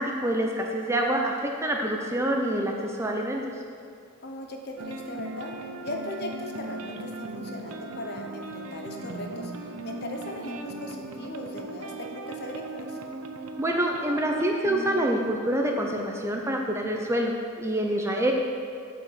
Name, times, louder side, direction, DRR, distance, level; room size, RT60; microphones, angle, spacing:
voice 1, 0.0-3.5 13.6-18.3, right 1 dB, 10° right, 1 dB, 0.6 m, -26 dB
voice 2, 4.2-5.5 5.8-13.0, left 1 dB, 45° left, 2 dB, 0.9 m, -38 dB
sound 1, 4.8-15.1, right 3 dB, 75° right, 0.7 m, -38 dB
8.8 x 5.1 x 7.4 m, 2.3 s
head